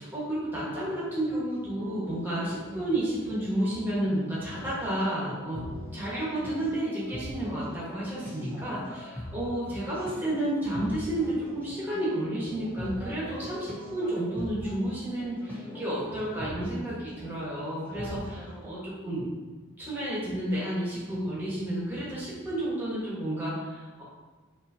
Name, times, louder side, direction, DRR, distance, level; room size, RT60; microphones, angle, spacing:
voice 1, 0.0-5.6 5.9-19.2 19.8-24.0, right 1 dB, 10° right, -8 dB, 1.2 m, -31 dB
sound 1, 1.0-18.6, left 1 dB, 5° left, 0.6 m, -42 dB
5.2 x 2.8 x 2.7 m, 1.3 s
head